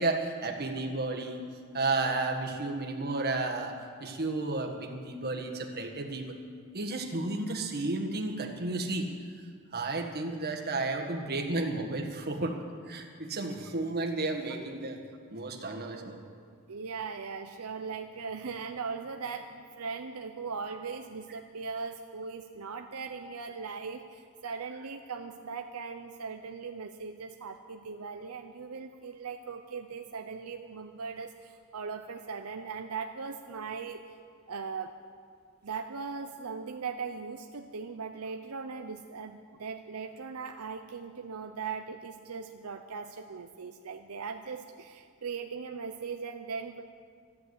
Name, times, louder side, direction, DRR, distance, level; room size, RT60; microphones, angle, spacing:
voice 1, 0.0-1.4 1.7-3.7 4.0-6.3 6.7-9.1 9.7-12.6 12.9-15.0 15.3-16.2, right 2 dB, 45° right, 3 dB, 1.6 m, -32 dB
voice 2, 16.7-34.0 34.5-35.0 35.6-46.8, right 5 dB, 80° right, 6 dB, 0.7 m, -39 dB
13.5 x 10.5 x 8.1 m, 2.1 s
head